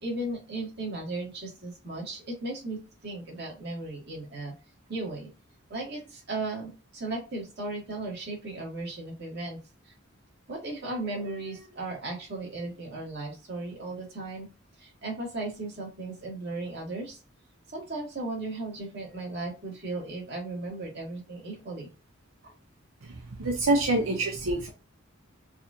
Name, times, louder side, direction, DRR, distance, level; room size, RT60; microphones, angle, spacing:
voice 1, 0.0-4.5 4.9-5.3 5.7-9.6 9.8-9.9 10.5-14.5 14.8-17.2 17.7-21.9 22.4-22.5, right 2 dB, 55° right, -3 dB, 2.1 m, -36 dB
voice 2, 23.4-24.7, right 2 dB, 85° right, 1 dB, 0.7 m, -26 dB
4.7 x 2.5 x 2.8 m, 0.30 s
head